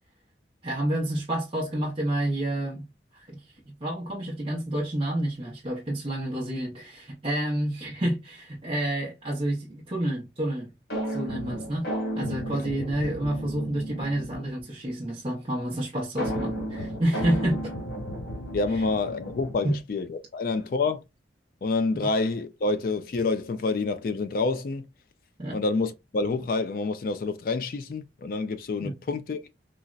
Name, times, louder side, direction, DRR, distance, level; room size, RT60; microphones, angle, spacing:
voice 1, 0.6-2.8 3.1-10.7 11.1-11.9 12.1-17.7 19.6-19.7 25.4-25.6 28.8-28.9, right 1 dB, 30° right, 0.6 m, -29 dB
sound 1, 10.9-14.6 16.2-19.8, equal, 75° left, 1.5 m, -33 dB
voice 2, 18.5-21.0 21.6-24.8 25.5-29.4, left 3 dB, 50° left, 0.4 m, -28 dB
3.9 x 2.0 x 2.3 m
head